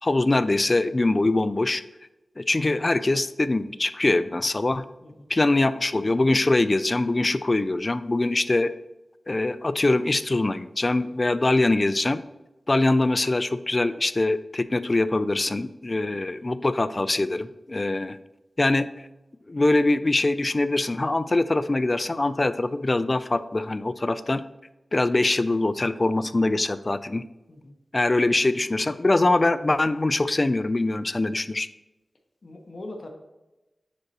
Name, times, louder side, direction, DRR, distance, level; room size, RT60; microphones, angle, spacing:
voice 1, 0.0-1.8 2.4-4.8 5.3-8.7 9.3-12.2 12.7-18.2 18.6-18.9 19.5-24.4 24.9-27.2 27.9-31.7, left 2 dB, 35° left, 13 dB, 0.3 m, -23 dB
voice 2, 32.4-33.1, left 2 dB, 55° left, 2 dB, 0.9 m, -42 dB
9.5 x 4.0 x 2.8 m, 1.0 s
wide cardioid pair, 90°, 0 cm